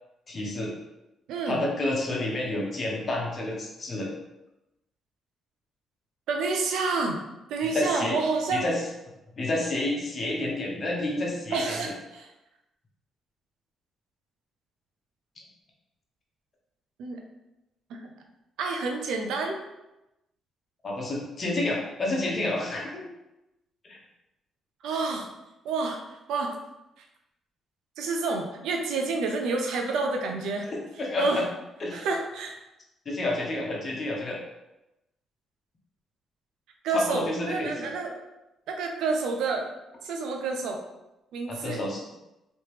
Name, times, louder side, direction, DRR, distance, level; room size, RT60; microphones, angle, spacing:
voice 1, 0.3-0.7 1.5-4.1 7.6-8.2 8.5-8.8 9.4-11.8 20.8-23.1 23.8-24.0 30.7-31.5 31.8-32.1 33.0-34.4 36.9-37.9 41.5-42.0, left 2 dB, 40° left, -2 dB, 1.0 m, -29 dB
voice 2, 1.3-1.7 6.3-7.2 7.5-8.7 11.5-12.3 17.0-17.2 17.9-18.1 18.6-19.5 24.8-25.3 25.6-26.0 26.3-26.5 28.0-30.7 31.2-31.5 31.9-32.6 36.8-38.2 38.7-39.7 40.0-40.8 41.3-41.8, right 3 dB, 85° right, 2 dB, 0.6 m, -29 dB
3.1 x 3.0 x 3.2 m, 0.95 s
cardioid pair, 90°, 0 cm